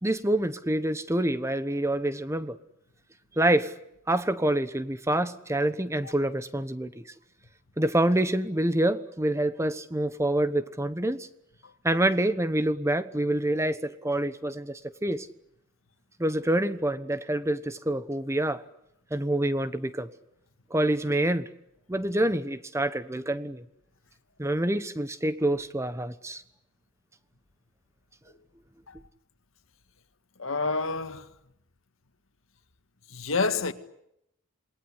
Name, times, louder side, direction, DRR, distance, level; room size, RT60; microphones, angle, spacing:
voice 1, 0.0-2.5 3.4-3.7 4.1-7.0 7.8-11.3 11.8-15.3 16.2-18.6 19.1-20.1 20.7-21.5 21.9-23.6 24.4-26.4, right 1 dB, 15° right, 1.2 m, -27 dB
voice 2, 30.4-31.3 33.1-33.7, left 4 dB, 80° left, 1.9 m, -28 dB
28.0 x 20.5 x 10.0 m
head